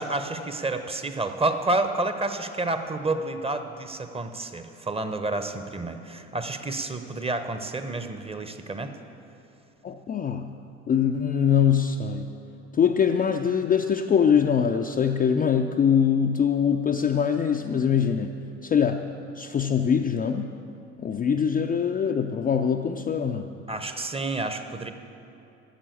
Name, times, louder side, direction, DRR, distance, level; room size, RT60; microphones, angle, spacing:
voice 1, 0.0-8.9 23.7-24.9, right 2 dB, 15° right, 8 dB, 0.9 m, -29 dB
voice 2, 9.8-10.5 10.9-12.3 12.7-18.3 18.6-19.1 19.4-20.5 21.0-23.5, left 7 dB, 20° left, 4 dB, 0.5 m, -23 dB
11.5 x 7.5 x 8.4 m, 2.7 s
figure-of-eight pair, 60°, 40 cm